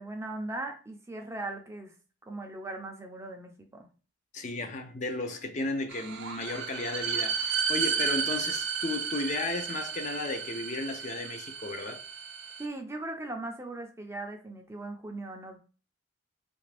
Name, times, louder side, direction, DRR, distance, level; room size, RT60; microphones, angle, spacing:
voice 1, 0.0-1.9 2.2-3.9 12.6-15.6, right 2 dB, 15° right, 0.5 m, -39 dB
voice 2, 4.3-12.0, left 2 dB, 40° left, 0.5 m, -34 dB
sound 1, 5.9-12.7, right 6 dB, 70° right, 0.4 m, -33 dB
3.3 x 2.5 x 3.2 m
head